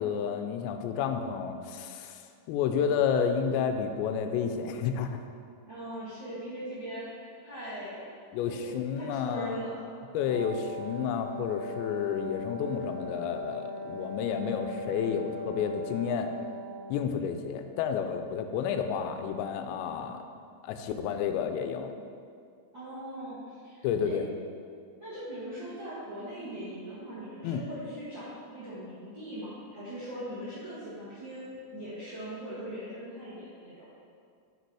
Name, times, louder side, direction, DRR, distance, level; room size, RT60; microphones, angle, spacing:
voice 1, 0.0-2.2 2.5-5.1 8.3-9.6 10.1-16.3 16.9-20.2 20.6-21.9 23.8-24.3 27.4-27.6, left 7 dB, 90° left, 7 dB, 2.8 m, -30 dB
voice 2, 5.7-8.0 8.4-8.6 8.9-9.8 22.7-24.2 25.0-31.5 31.7-33.9, right 1 dB, 50° right, -13 dB, 1.3 m, -40 dB
Wind instrument woodwind instrument, 10.3-17.0, left 2 dB, 70° right, 1.9 m, -39 dB
6.8 x 6.4 x 4.7 m, 2.3 s
omnidirectional pair, 5.0 m